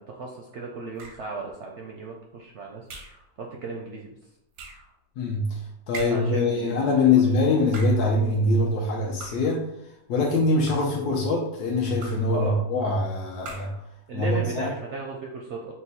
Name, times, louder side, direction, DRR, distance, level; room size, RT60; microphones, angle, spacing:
voice 1, 0.0-2.9 3.4-4.1 6.1-7.3 12.3-12.6 14.1-15.7, right 4 dB, 65° right, 0 dB, 0.7 m, -35 dB
sound 1, 1.0-1.4 2.9-3.3 4.5-4.9 5.9-6.4 7.6-8.1 9.2-9.6 10.4-11.0 12.0-12.4 13.4-13.9, right 2 dB, 90° right, 1.3 m, -41 dB
voice 2, 5.2-9.6 10.1-13.7 14.1-14.7, left 3 dB, 80° left, -2 dB, 1.2 m, -23 dB
4.1 x 2.3 x 4.0 m, 0.82 s
omnidirectional pair, 1.7 m